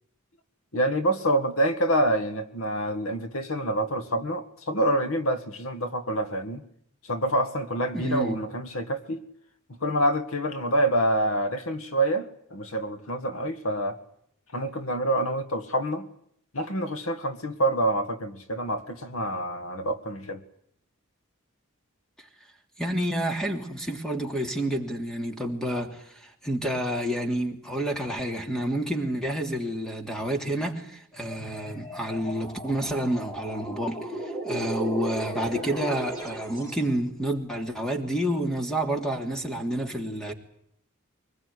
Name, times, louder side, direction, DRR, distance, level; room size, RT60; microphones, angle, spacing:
voice 1, 0.7-6.6 7.0-9.2 9.8-14.0 14.5-16.1 16.5-20.4, right 1 dB, 80° left, 1.9 m, -27 dB
voice 2, 7.9-8.4 22.8-40.3, right 1 dB, 5° left, 3.1 m, -29 dB
sound 1, 31.1-36.9, right 1 dB, 20° left, 5.3 m, -36 dB
24.0 x 20.0 x 9.7 m
head